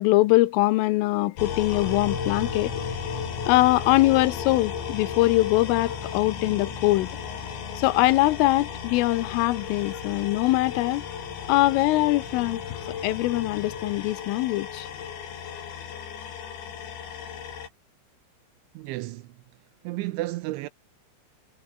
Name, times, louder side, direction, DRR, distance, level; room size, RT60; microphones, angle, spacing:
voice 1, 0.0-2.8 3.5-7.2 7.8-11.1 11.5-12.6 13.0-14.9, left 19 dB, 80° left, 3.3 m, -22 dB
sound 1, 1.4-17.7, left 8 dB, 60° left, 5.8 m, -35 dB
sound 2, 1.8-14.1, right 1 dB, 5° right, 7.3 m, -43 dB
voice 2, 18.7-19.4 19.8-20.7, right 18 dB, 80° right, 2.9 m, -32 dB
omnidirectional pair, 5.9 m